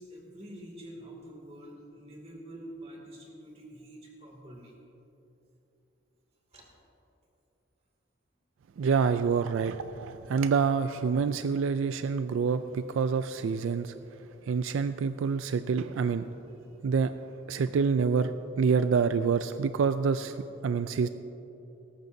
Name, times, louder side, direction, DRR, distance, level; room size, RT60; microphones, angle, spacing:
voice 1, 0.0-4.7 6.5-6.7, right 1 dB, 30° right, 0 dB, 2.4 m, -46 dB
voice 2, 8.8-13.9 14.5-16.3 16.8-17.1 17.5-18.3 18.6-21.1, right 5 dB, 80° right, 11 dB, 0.3 m, -27 dB
18.0 x 14.5 x 2.7 m, 3.0 s
head